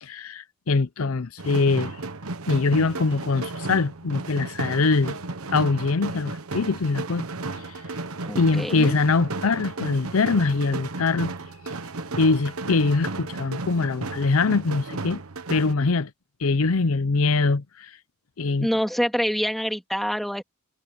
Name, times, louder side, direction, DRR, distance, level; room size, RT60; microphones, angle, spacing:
voice 1, 0.0-2.0 2.5-5.2 5.5-7.3 7.5-7.7 8.4-11.3 12.2-15.2 15.5-16.1 16.4-18.0 18.4-18.7, left 3 dB, 70° left, 0.7 m, -23 dB
sound 1, 1.4-15.7, right 3 dB, 80° right, 1.2 m, -34 dB
voice 2, 8.3-9.0 18.6-20.4, equal, ahead, 2.7 m, -26 dB
head